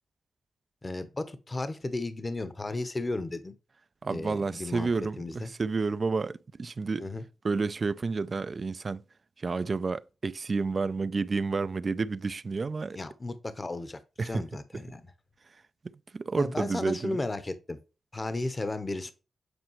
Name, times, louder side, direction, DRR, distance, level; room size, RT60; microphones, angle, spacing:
voice 1, 0.8-3.5 4.1-4.9 5.2-5.5 7.0-7.2 12.9-15.0 16.3-17.8 18.1-19.1, left 2 dB, 30° left, 0.9 m, -34 dB
voice 2, 4.0-7.1 7.4-9.0 9.4-13.0 14.2-14.4 14.7-14.8 15.8-17.2, right 4 dB, 50° right, 0.3 m, -30 dB
8.1 x 4.5 x 3.1 m
cardioid pair, 60°, 0 cm